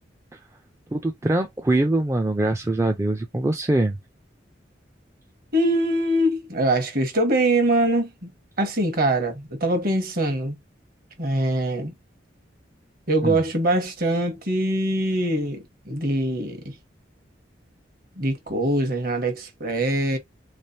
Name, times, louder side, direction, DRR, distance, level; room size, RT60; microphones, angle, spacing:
voice 1, 0.9-4.0 13.2-13.4, right 2 dB, 15° right, 0.4 m, -23 dB
voice 2, 5.5-8.3 8.6-10.6 11.2-11.9 13.1-16.7 18.2-20.2, right 1 dB, 50° right, 1.2 m, -23 dB
3.6 x 3.2 x 2.7 m
head